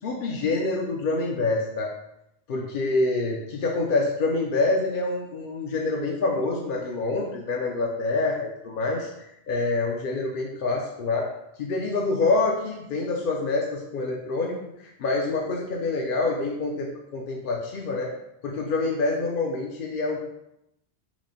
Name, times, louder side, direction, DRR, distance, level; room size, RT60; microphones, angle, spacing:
voice 1, 0.0-1.9 2.5-9.1 9.5-11.3 11.6-14.6 15.0-18.1 18.4-20.3, left 3 dB, 55° left, -1 dB, 0.7 m, -26 dB
5.9 x 2.1 x 4.0 m, 0.82 s
omnidirectional pair, 1.2 m